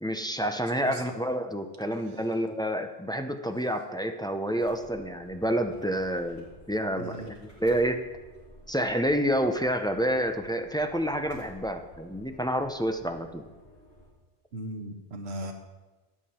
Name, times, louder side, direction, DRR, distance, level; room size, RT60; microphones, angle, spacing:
voice 1, 0.0-8.0 8.7-13.4, equal, 5° left, 6 dB, 0.5 m, -29 dB
voice 2, 0.8-1.2 1.9-2.4 7.0-7.3 14.5-15.5, right 1 dB, 90° right, 3 dB, 1.3 m, -39 dB
sound 1, 4.6-14.1, equal, 80° left, 4.1 m, -53 dB
13.0 x 9.4 x 4.3 m, 1.2 s
omnidirectional pair, 1.1 m